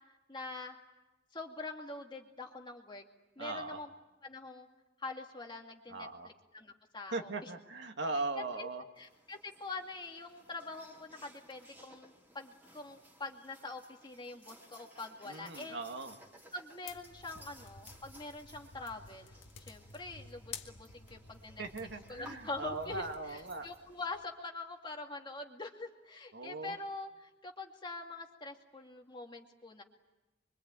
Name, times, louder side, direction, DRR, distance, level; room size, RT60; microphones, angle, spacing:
voice 1, 0.3-0.8 1.3-3.0 3.4-3.9 4.2-4.7 5.0-7.5 8.4-8.7 9.0-15.8 16.5-19.3 19.7-21.6 22.1-23.0 23.3-29.8, left 2 dB, 25° left, 2 dB, 2.3 m, -44 dB
voice 2, 3.4-3.8 5.9-6.3 7.1-8.8 15.3-16.2 21.6-23.7 26.3-26.8, right 3 dB, 65° right, 4 dB, 2.1 m, -39 dB
sound 1, 8.9-24.2, equal, 10° right, 3.5 m, -59 dB
sound 2, 16.9-23.1, left 5 dB, 75° left, 1.9 m, -51 dB
26.0 x 24.0 x 9.0 m, 1.0 s
head